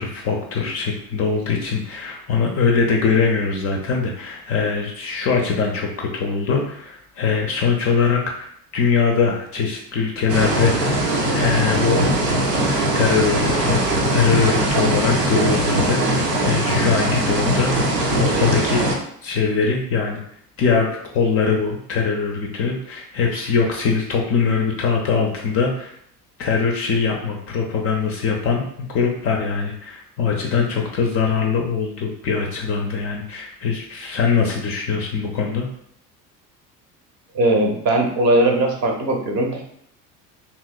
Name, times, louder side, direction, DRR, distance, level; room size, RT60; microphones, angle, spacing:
voice 1, 0.0-8.5 8.7-10.7 11.3-12.0 12.9-13.9 14.1-18.9 19.2-20.2 20.6-25.9 26.4-35.7, left 5 dB, 30° left, 1 dB, 0.4 m, -22 dB
sound 1, 10.3-19.0, right 1 dB, 90° right, 0.6 m, -20 dB
voice 2, 37.3-39.6, right 1 dB, 35° right, 2 dB, 0.6 m, -19 dB
2.9 x 2.8 x 2.2 m, 0.69 s
figure-of-eight pair, 65°, 47 cm